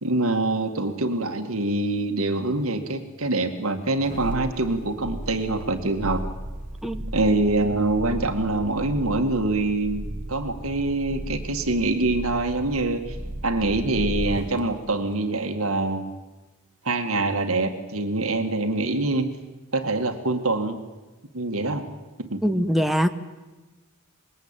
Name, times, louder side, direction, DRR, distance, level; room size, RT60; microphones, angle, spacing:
voice 1, 0.0-6.2 7.1-13.2 13.4-16.2 16.8-19.3 19.7-20.8 21.3-21.9 22.2-22.4, right 2 dB, 70° right, 6 dB, 2.1 m, -25 dB
sound 1, 3.9-14.6 15.0-15.1, right 1 dB, 40° right, 2.1 m, -35 dB
voice 2, 22.4-23.1, equal, ahead, 7 dB, 1.1 m, -22 dB
25.5 x 21.5 x 9.0 m, 1.2 s
head